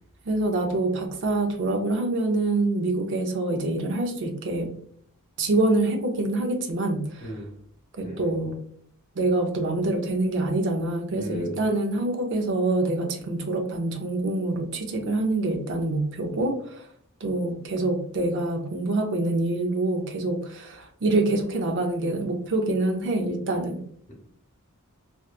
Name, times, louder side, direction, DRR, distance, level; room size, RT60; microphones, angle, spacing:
voice 1, 0.3-4.7 5.4-7.3 8.0-8.6 9.2-16.9 17.2-23.8, right 2 dB, 60° right, 5 dB, 0.5 m, -26 dB
voice 2, 8.0-8.4 11.2-11.6, equal, 25° left, -5 dB, 1.1 m, -38 dB
2.9 x 2.2 x 2.3 m, 0.62 s
head